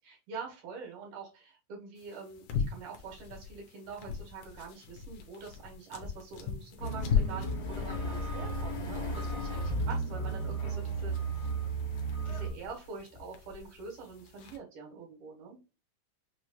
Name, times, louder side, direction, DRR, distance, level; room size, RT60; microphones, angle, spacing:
voice 1, 0.0-11.1 12.2-15.6, right 5 dB, 75° right, -2 dB, 3.2 m, -45 dB
sound 1, 2.0-14.6, left 7 dB, 80° left, 2.3 m, -39 dB
sound 2, 6.8-12.5, right 2 dB, 35° left, 1.5 m, -34 dB
6.6 x 3.1 x 2.3 m, 0.32 s
omnidirectional pair, 3.6 m